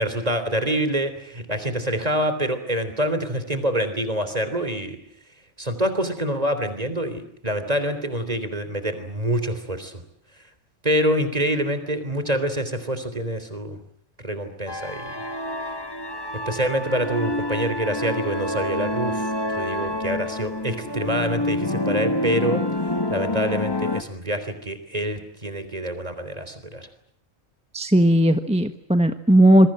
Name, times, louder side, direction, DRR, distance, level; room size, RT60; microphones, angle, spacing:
voice 1, 0.0-5.0 5.6-10.0 10.8-13.8 14.2-15.1 16.5-22.6 23.1-26.9, right 1 dB, 30° right, 10 dB, 3.6 m, -26 dB
sound 1, 14.7-24.0, left 1 dB, 20° left, 1.3 m, -27 dB
voice 2, 27.7-29.7, right 1 dB, 5° right, 8 dB, 1.0 m, -17 dB
27.0 x 22.5 x 7.7 m, 0.66 s
omnidirectional pair, 1.3 m